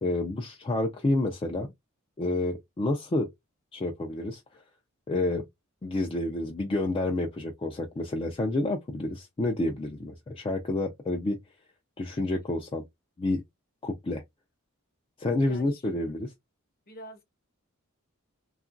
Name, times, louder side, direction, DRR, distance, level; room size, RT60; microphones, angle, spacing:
voice 1, 0.0-1.7 2.2-3.3 3.7-4.4 5.1-5.5 5.8-11.4 12.0-12.8 13.2-13.4 13.8-14.2 15.2-16.3, left 2 dB, 25° left, 0.4 m, -29 dB
voice 2, 15.5-15.9 16.9-17.2, left 1 dB, 45° left, 0.9 m, -46 dB
2.9 x 2.4 x 2.5 m
head